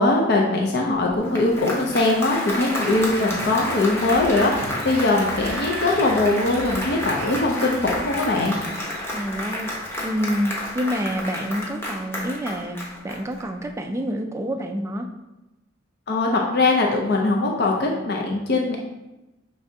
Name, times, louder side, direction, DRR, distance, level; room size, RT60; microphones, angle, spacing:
voice 1, 0.0-8.6 16.1-18.8, left 2 dB, 55° left, 0 dB, 0.5 m, -21 dB
Applause, 1.1-13.6, left 1 dB, 15° left, 0.8 m, -30 dB
sound 1, 2.6-9.2, right 2 dB, 90° right, 0.6 m, -38 dB
voice 2, 9.1-9.7 10.0-12.8 13.0-15.1, equal, 15° right, 4 dB, 0.3 m, -27 dB
5.9 x 3.3 x 2.7 m, 1.0 s
head